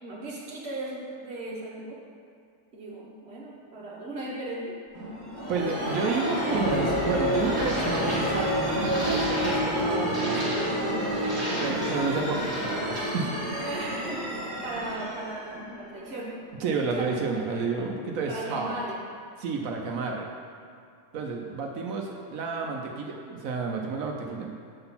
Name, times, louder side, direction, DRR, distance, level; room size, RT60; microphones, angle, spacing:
voice 1, 0.0-2.0 2.7-4.7 11.4-12.0 13.6-14.3 14.6-16.3 16.8-17.9 18.3-19.0, right 2 dB, 45° right, -4 dB, 1.5 m, -37 dB
sound 1, 4.9-16.5, equal, 15° right, 1.9 m, -28 dB
voice 2, 5.5-8.6 9.0-10.6 11.6-13.3 16.6-18.8 19.4-20.3 21.1-24.5, right 4 dB, 70° right, 1 dB, 1.1 m, -31 dB
7.7 x 3.9 x 5.7 m, 2.4 s
omnidirectional pair, 1.5 m